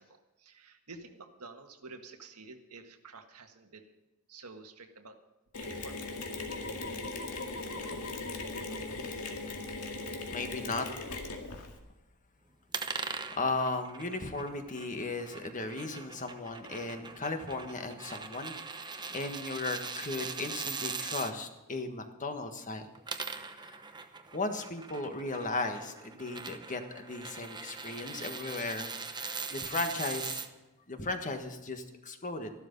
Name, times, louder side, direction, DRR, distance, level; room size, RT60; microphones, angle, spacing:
voice 1, 0.0-3.9 4.3-5.2 5.6-6.2, right 3 dB, 85° right, 5 dB, 1.7 m, -50 dB
Mechanisms, 5.5-11.8, left 3 dB, 75° left, 2.2 m, -39 dB
voice 2, 9.0-9.3 10.3-10.9 13.3-22.9 23.5-23.8 24.3-30.4 30.9-32.5, left 3 dB, 35° left, 6 dB, 1.6 m, -36 dB
sound 1, 12.7-21.3 22.8-30.5, right 5 dB, 20° right, 0.8 m, -41 dB
14.0 x 12.5 x 5.3 m, 1.0 s
head